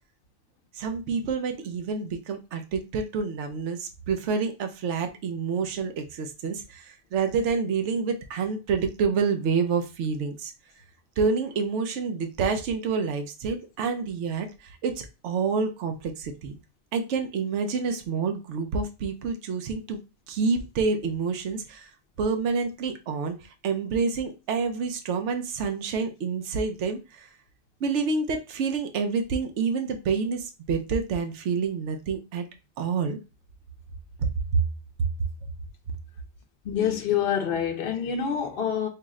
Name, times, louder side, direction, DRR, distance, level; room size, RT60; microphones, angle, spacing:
voice 1, 0.7-10.5 11.2-16.6 16.9-20.0 20.3-21.9 22.2-23.4 23.6-27.3 27.8-32.5 32.8-33.2 34.2-34.3, right 5 dB, 80° right, 0.9 m, -28 dB
voice 2, 36.6-38.9, left 8 dB, 60° left, 0.8 m, -26 dB
4.7 x 2.1 x 3.6 m
omnidirectional pair, 1.2 m